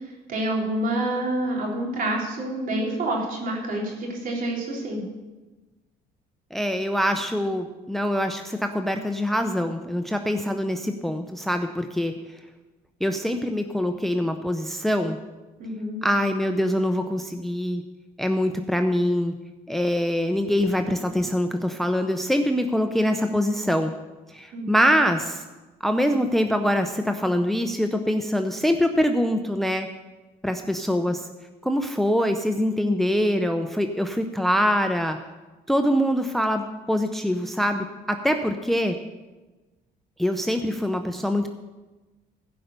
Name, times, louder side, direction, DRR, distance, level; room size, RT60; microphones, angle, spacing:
voice 1, 0.3-5.0 15.6-16.0 24.5-24.7, right 1 dB, 55° right, -2 dB, 3.6 m, -27 dB
voice 2, 6.5-12.1 13.0-15.2 16.0-17.8 18.2-19.3 19.7-23.9 24.3-25.4 25.8-29.9 30.4-31.3 31.6-35.2 35.7-39.0 40.2-41.5, equal, ahead, 7 dB, 0.6 m, -24 dB
15.5 x 5.4 x 6.7 m, 1.2 s
cardioid pair, 110°, 17 cm